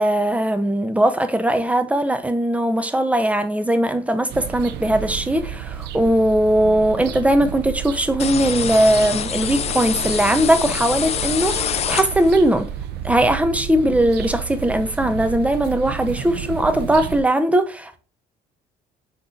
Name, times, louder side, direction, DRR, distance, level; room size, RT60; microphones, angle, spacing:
voice 1, 0.0-12.7 13.0-18.0, right 1 dB, 10° right, 0.6 m, -19 dB
sound 1, 4.3-17.2, right 9 dB, 80° right, 0.5 m, -32 dB
sound 2, 8.2-12.5, left 9 dB, 40° left, 0.4 m, -26 dB
5.6 x 3.7 x 2.5 m
cardioid pair, 110°, 17 cm